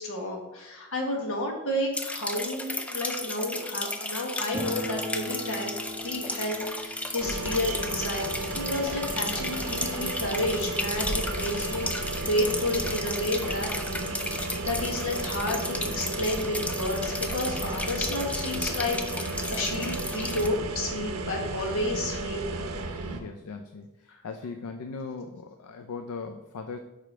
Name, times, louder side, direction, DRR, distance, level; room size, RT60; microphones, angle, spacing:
voice 1, 0.0-13.7 14.6-22.5, left 1 dB, 65° left, 0 dB, 1.4 m, -31 dB
sound 1, 1.9-20.5, left 2 dB, 5° left, 0.4 m, -34 dB
sound 2, 4.5-11.2 11.5-11.6 11.8-11.9 12.7-12.8 13.1-14.3, equal, 15° right, 1.1 m, -41 dB
sound 3, 7.2-23.2, right 2 dB, 80° right, 0.7 m, -33 dB
voice 2, 23.1-26.8, left 4 dB, 80° left, 6 dB, 0.4 m, -39 dB
5.0 x 4.8 x 4.3 m, 1.0 s
head